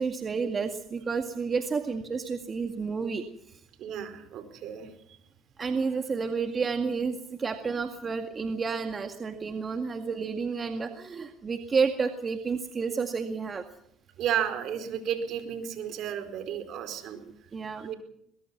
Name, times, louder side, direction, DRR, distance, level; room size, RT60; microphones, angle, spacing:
voice 1, 0.0-3.2 5.6-13.6 17.2-17.9, right 5 dB, 35° right, 6 dB, 2.0 m, -30 dB
voice 2, 3.8-4.9 14.2-17.2 17.8-17.9, right 9 dB, 65° right, 9 dB, 4.6 m, -32 dB
22.5 x 21.0 x 6.0 m, 0.74 s
supercardioid pair, 85°, 0 cm